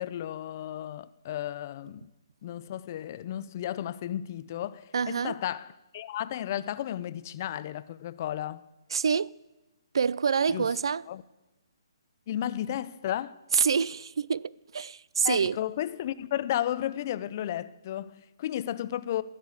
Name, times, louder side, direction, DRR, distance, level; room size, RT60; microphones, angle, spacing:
voice 1, 0.0-2.1 2.4-8.7 10.5-10.7 11.1-11.2 12.3-13.4 15.2-19.2, left 11 dB, 35° left, 0.4 m, -33 dB
voice 2, 4.9-5.4 8.9-9.3 9.9-11.0 13.5-15.6, right 6 dB, 70° right, 0.3 m, -26 dB
14.0 x 6.7 x 8.1 m
hypercardioid pair, 160°, 3 cm